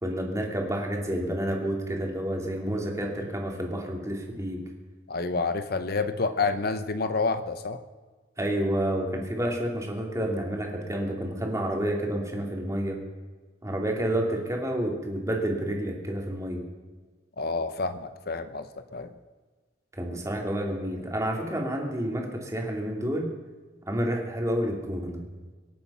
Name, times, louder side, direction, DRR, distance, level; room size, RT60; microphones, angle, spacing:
voice 1, 0.0-4.6 8.4-13.0 13.6-16.6 20.0-23.3 23.9-25.2, right 1 dB, 15° right, 1 dB, 2.8 m, -29 dB
voice 2, 5.1-7.8 17.4-18.7 18.9-19.1, left 4 dB, 60° left, 10 dB, 0.8 m, -28 dB
25.5 x 8.7 x 5.7 m, 1.4 s
head